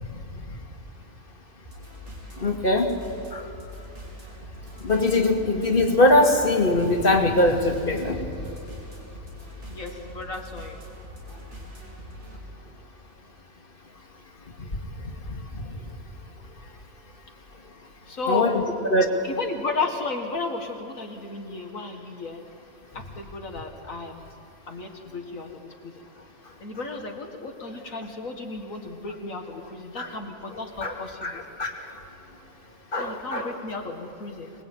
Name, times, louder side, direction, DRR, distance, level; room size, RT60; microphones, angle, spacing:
voice 1, 0.1-0.5 2.4-2.9 3.3-3.5 4.8-8.2 14.6-14.7 15.2-15.8 18.3-18.6 18.9-19.2 30.0-30.1 30.8-31.9 32.9-33.6, left 1 dB, 40° left, 3 dB, 2.6 m, -22 dB
sound 1, 1.6-12.4, equal, 50° right, 4.5 m, -42 dB
voice 2, 9.7-10.8 18.1-18.5 19.2-22.4 22.9-24.3 24.7-26.0 26.6-31.4 33.0-34.5, left 3 dB, 65° left, 3 dB, 2.2 m, -33 dB
25.0 x 21.0 x 9.0 m, 2.8 s
omnidirectional pair, 1.5 m